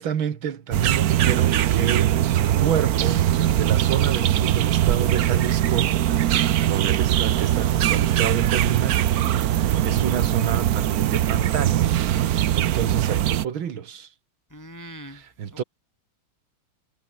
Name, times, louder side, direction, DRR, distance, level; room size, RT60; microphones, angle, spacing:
voice 1, 0.0-6.0 6.2-9.1 9.5-14.1 15.0-15.6, right 8 dB, 85° right, 2.4 m, -29 dB
sound 1, 0.7-13.5, right 12 dB, 60° right, 1.1 m, -21 dB
voice 2, 14.5-15.2 15.5-15.6, right 1 dB, 10° left, 1.0 m, -41 dB
omnidirectional pair, 2.2 m